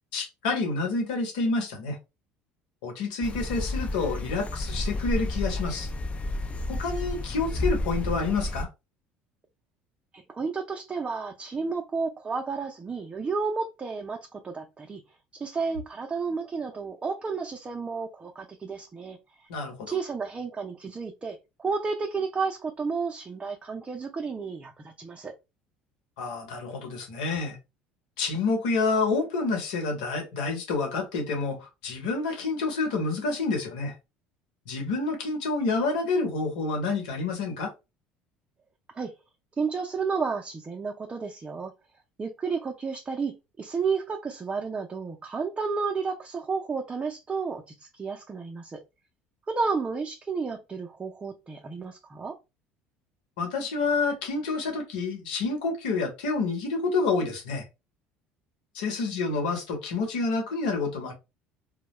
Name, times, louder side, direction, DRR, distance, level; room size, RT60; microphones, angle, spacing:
voice 1, 0.1-2.0 2.8-5.9 6.7-8.7 19.5-19.9 26.2-27.6 28.2-33.9 34.7-37.7 53.4-57.6 58.7-61.1, left 3 dB, 80° left, 1.1 m, -28 dB
sound 1, 3.2-8.7, left 1 dB, 25° left, 0.5 m, -31 dB
voice 2, 10.1-15.0 15.3-19.5 19.9-25.3 38.9-39.1 39.6-41.7 42.2-48.8 49.5-52.4, right 5 dB, 25° right, 0.5 m, -32 dB
2.2 x 2.1 x 3.0 m
hypercardioid pair, 75°, 5 cm